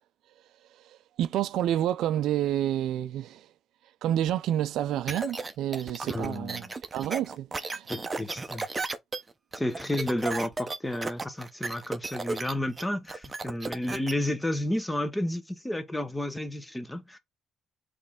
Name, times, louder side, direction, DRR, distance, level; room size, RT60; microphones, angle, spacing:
voice 1, 1.2-3.4 4.0-7.9, right 11 dB, 85° right, 0.3 m, -29 dB
sound 1, 5.1-14.1, right 3 dB, 25° right, 0.6 m, -34 dB
voice 2, 6.1-6.7 7.9-8.6 9.5-17.2, left 1 dB, 10° left, 0.8 m, -31 dB
4.1 x 3.1 x 3.5 m
cardioid pair, 90°, 0 cm